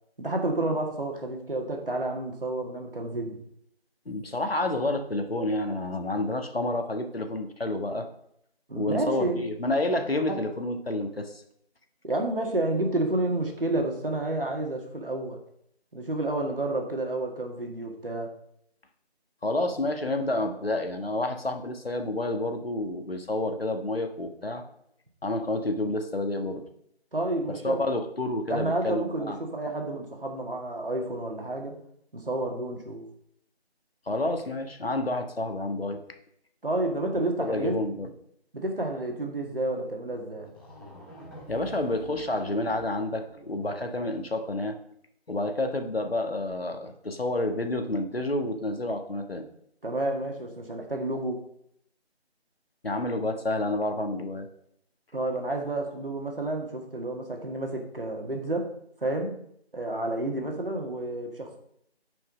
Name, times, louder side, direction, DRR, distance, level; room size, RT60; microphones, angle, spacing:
voice 1, 0.2-3.4 8.7-9.4 10.3-10.4 12.0-15.4 15.9-18.3 27.1-27.8 28.5-31.8 32.1-33.1 36.6-37.8 38.5-40.5 49.8-51.4 55.1-58.7 59.0-59.4 59.7-61.6, right 2 dB, 55° right, 2 dB, 2.1 m, -30 dB
voice 2, 4.0-8.1 8.7-11.4 19.4-24.6 25.2-26.6 27.5-29.4 34.1-36.0 37.2-38.1 41.5-44.8 45.3-49.4 52.8-54.5, left 2 dB, 65° left, 5 dB, 1.4 m, -29 dB
sound 1, 40.1-40.2 40.4-44.2, equal, 20° left, 2.0 m, -47 dB
9.4 x 5.5 x 5.0 m, 0.72 s
figure-of-eight pair, 175°, 32 cm